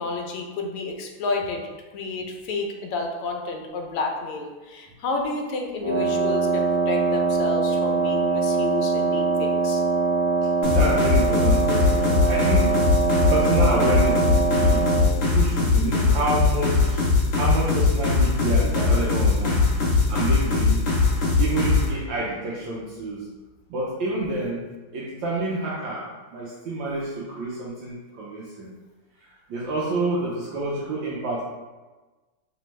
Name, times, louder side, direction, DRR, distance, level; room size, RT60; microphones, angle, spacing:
voice 1, 0.0-1.7 1.9-9.8 15.9-16.2, left 3 dB, 85° left, 2 dB, 1.5 m, -30 dB
Wind instrument woodwind instrument, 5.8-15.1, right 4 dB, 40° right, 0.9 m, -23 dB
sound 1, 10.6-21.9, left 4 dB, 65° left, 0.7 m, -20 dB
voice 2, 10.7-12.8 13.3-14.9 15.2-17.0 17.4-19.6 20.1-20.8 21.4-23.3 23.7-24.6 24.9-28.7 29.2-31.4, right 2 dB, 75° right, -5 dB, 1.2 m, -28 dB
3.4 x 3.2 x 3.1 m, 1.2 s
omnidirectional pair, 2.3 m